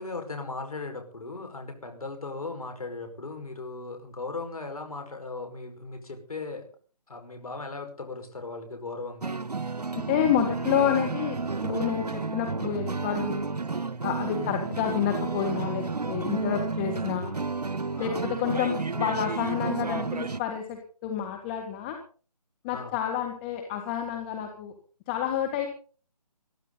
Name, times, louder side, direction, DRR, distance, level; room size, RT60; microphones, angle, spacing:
voice 1, 0.0-6.7 7.1-9.4 14.4-14.7 17.9-18.3 22.7-22.9, left 3 dB, 65° left, 5 dB, 5.4 m, -37 dB
sound 1, 9.2-20.4, right 4 dB, 80° right, 1.0 m, -31 dB
voice 2, 9.9-13.5 14.0-17.3 18.0-22.0 22.6-24.7 25.1-25.7, left 9 dB, 15° left, 3 dB, 1.7 m, -29 dB
22.0 x 14.5 x 4.1 m, 0.42 s
figure-of-eight pair, 150°, 20 cm